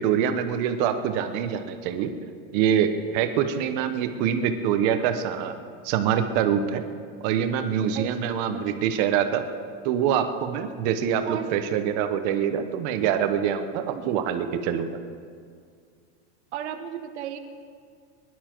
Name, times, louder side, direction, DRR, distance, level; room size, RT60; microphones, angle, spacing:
voice 1, 0.0-2.1 2.5-5.5 5.8-6.8 7.2-9.4 9.8-14.9, right 8 dB, 40° right, 8 dB, 1.0 m, -25 dB
voice 2, 3.8-4.1 7.9-8.8 11.3-11.5 13.9-14.2 16.5-17.4, right 9 dB, 80° right, 6 dB, 1.3 m, -36 dB
22.0 x 11.5 x 4.6 m, 2.2 s
supercardioid pair, 175°, 33 cm